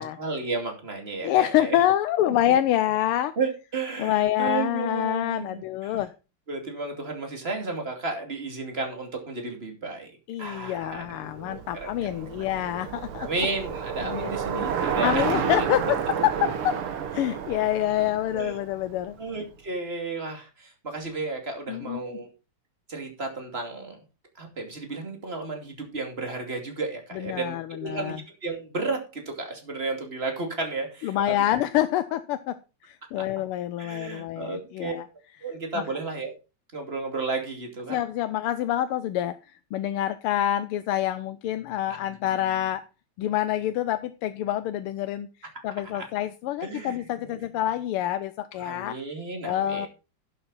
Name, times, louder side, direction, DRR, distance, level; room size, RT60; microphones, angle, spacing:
voice 1, 0.0-1.8 2.2-2.3 3.4-5.9 6.5-10.1 10.4-12.5 13.2-15.2 15.6-15.7 18.3-18.6 19.2-22.3 22.9-24.0 24.3-31.4 33.1-33.2 33.8-34.9 35.4-36.3 36.7-38.0 45.9-46.1 46.6-47.4 48.6-49.9, right 3 dB, 25° right, 3 dB, 2.7 m, -33 dB
voice 2, 1.2-3.3 4.0-6.1 10.3-13.3 14.0-14.3 15.0-16.7 17.1-19.2 21.7-22.2 27.1-28.2 31.0-32.5 32.8-35.0 37.9-42.8 43.2-48.9 49.4-49.9, left 12 dB, 85° left, 11 dB, 1.6 m, -27 dB
Bicycle, 11.0-19.3, right 7 dB, 75° right, 2.0 m, -31 dB
11.0 x 7.6 x 4.1 m, 0.31 s
omnidirectional pair, 2.4 m